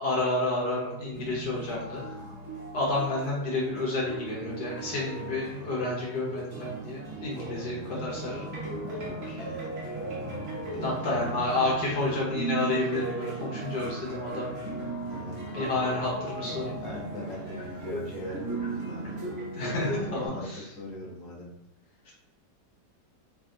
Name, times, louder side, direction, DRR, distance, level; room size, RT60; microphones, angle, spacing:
voice 1, 0.0-2.0 2.7-8.4 10.8-14.6 15.5-16.8 19.5-20.6 22.1-22.2, left 2 dB, 75° left, -5 dB, 1.5 m, -30 dB
sound 1, 1.1-20.3, right 2 dB, 45° right, 1.1 m, -37 dB
voice 2, 7.3-8.5 8.9-9.7 10.7-11.9 15.0-15.9 16.4-16.5 16.8-19.3 19.7-21.5, left 1 dB, 55° left, -3 dB, 1.2 m, -42 dB
3.4 x 2.3 x 3.8 m, 0.88 s
omnidirectional pair, 1.9 m